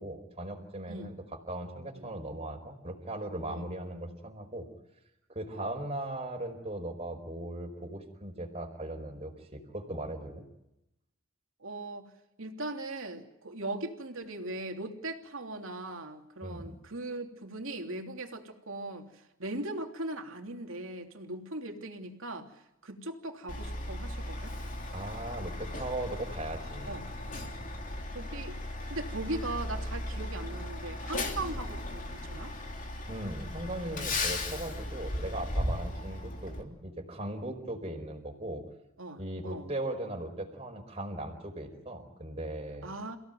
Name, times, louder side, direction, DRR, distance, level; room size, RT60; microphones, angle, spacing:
voice 1, 0.0-4.7 5.3-10.4 16.4-16.8 24.9-27.0 33.1-38.6 39.2-42.9, right 1 dB, 30° right, 3 dB, 4.9 m, -38 dB
voice 2, 11.6-12.1 12.4-24.5 26.9-27.0 28.1-28.6 28.9-32.5 35.9-36.0 39.0-39.7 42.8-43.2, right 2 dB, 65° right, 4 dB, 3.2 m, -39 dB
Truck, 23.5-36.6, left 1 dB, 40° left, 3.4 m, -36 dB
29.0 x 17.0 x 9.3 m, 0.88 s
head